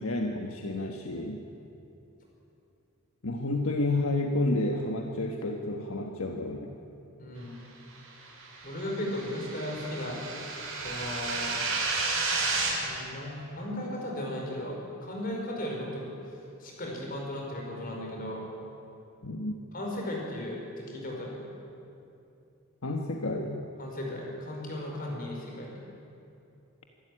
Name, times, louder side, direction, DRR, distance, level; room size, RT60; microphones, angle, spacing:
voice 1, 0.0-1.4 3.2-6.7 19.2-19.6 22.8-23.7, left 2 dB, 70° left, 3 dB, 1.4 m, -30 dB
voice 2, 7.2-7.6 8.6-10.2 10.8-11.6 12.8-16.1 16.6-18.4 19.7-21.5 23.8-25.7, left 1 dB, 40° left, -1 dB, 5.3 m, -36 dB
sound 1, 8.3-12.7, right 3 dB, 65° right, 5.9 m, -32 dB
25.5 x 12.5 x 10.0 m, 2.7 s
head